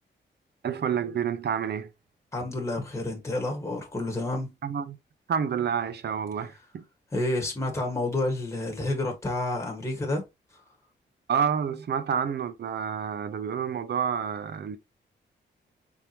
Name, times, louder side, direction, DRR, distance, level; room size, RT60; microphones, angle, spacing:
voice 1, 0.6-1.9 4.6-5.0 5.3-6.8 11.3-14.8, right 7 dB, 60° right, 0.7 m, -29 dB
voice 2, 2.3-4.5 7.1-10.2, left 2 dB, 15° left, 1.4 m, -29 dB
4.6 x 3.6 x 2.8 m
cardioid pair, 100°, 19 cm